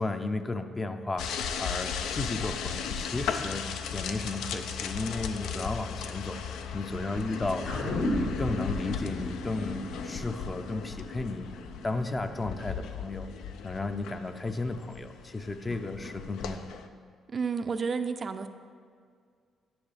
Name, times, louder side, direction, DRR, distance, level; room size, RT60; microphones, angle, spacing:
voice 1, 0.0-6.4 6.7-7.7 8.1-11.5 11.8-13.3 13.6-16.6, left 2 dB, 25° left, 8 dB, 0.5 m, -34 dB
sound 1, 1.2-16.9, left 6 dB, 85° left, 0.4 m, -37 dB
sound 2, 7.6-12.2 12.6-12.7, left 1 dB, 65° left, 1.5 m, -34 dB
voice 2, 17.3-18.5, right 5 dB, 40° right, 9 dB, 0.4 m, -31 dB
10.5 x 6.1 x 3.3 m, 2.1 s
cardioid pair, 90°, 0 cm